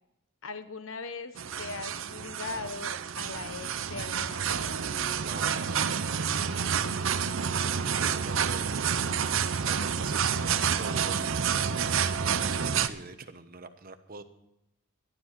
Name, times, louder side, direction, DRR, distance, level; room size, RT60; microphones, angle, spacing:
voice 1, 0.4-4.9, left 4 dB, 65° left, 10 dB, 1.0 m, -40 dB
sound 1, 1.4-12.9, right 7 dB, 65° right, 0.7 m, -29 dB
voice 2, 5.2-6.7 7.2-11.2 11.8-14.2, right 4 dB, 40° right, 8 dB, 1.1 m, -45 dB
12.5 x 11.5 x 6.0 m, 0.84 s
head